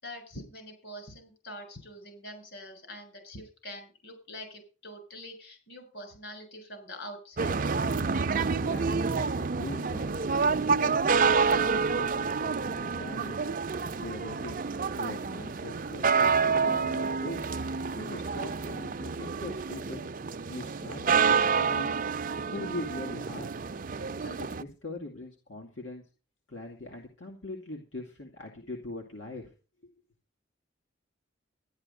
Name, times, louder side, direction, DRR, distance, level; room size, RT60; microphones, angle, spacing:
voice 1, 0.0-7.6, left 1 dB, 60° left, 6 dB, 7.0 m, -44 dB
sound 1, 7.4-24.6, right 5 dB, 45° right, 0.6 m, -28 dB
voice 2, 8.5-14.7 15.0-20.0 20.5-22.1 22.5-23.5 24.2-26.0 26.5-29.5 29.8-29.9, left 2 dB, 85° left, 1 dB, 2.5 m, -42 dB
13.0 x 11.5 x 5.4 m, 0.35 s
head